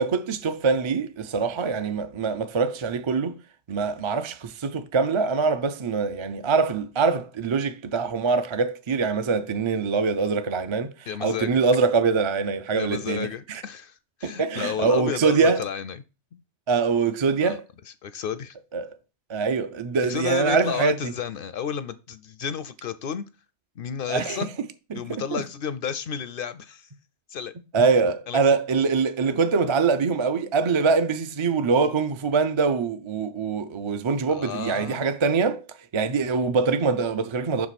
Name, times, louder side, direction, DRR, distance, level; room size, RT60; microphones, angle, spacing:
voice 1, 0.0-3.4 3.7-13.6 14.2-15.6 16.7-17.6 18.7-18.9 19.3-21.1 24.1-24.5 24.9-25.4 27.7-35.7 35.9-37.7, right 4 dB, 45° right, 0.4 m, -24 dB
voice 2, 11.1-11.6 12.7-16.0 16.3-16.4 17.4-17.6 17.9-18.6 20.1-23.2 23.8-24.5 24.9-26.9 27.3-27.5 28.3-28.6 34.3-35.1, left 8 dB, 60° left, 0.6 m, -32 dB
6.3 x 4.8 x 4.1 m
omnidirectional pair, 1.2 m